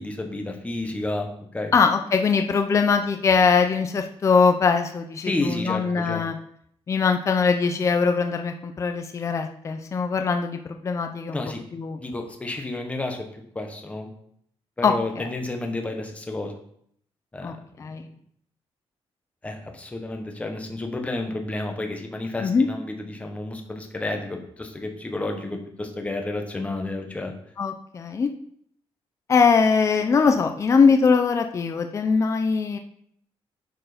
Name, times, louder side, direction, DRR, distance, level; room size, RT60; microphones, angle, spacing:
voice 1, 0.0-1.7 5.2-6.2 11.3-11.6 12.0-14.1 14.8-16.5 17.3-17.6 19.4-27.3, left 2 dB, 15° left, 3 dB, 1.1 m, -31 dB
voice 2, 1.7-6.3 6.9-11.4 11.7-12.0 14.8-15.2 17.4-18.1 22.4-22.7 27.6-28.3 29.3-32.8, left 5 dB, 30° left, 6 dB, 0.5 m, -21 dB
10.0 x 4.6 x 5.0 m, 0.68 s
wide cardioid pair, 175°, 10 cm